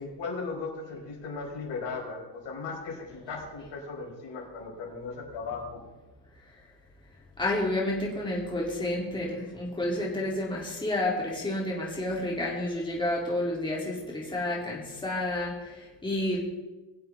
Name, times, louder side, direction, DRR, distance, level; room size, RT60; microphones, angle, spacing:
voice 1, 0.0-5.8, left 4 dB, 60° left, -2 dB, 5.0 m, -37 dB
voice 2, 7.4-16.4, left 1 dB, 10° left, -4 dB, 3.5 m, -30 dB
21.5 x 7.6 x 3.8 m, 1.1 s
hypercardioid pair, 75°, 49 cm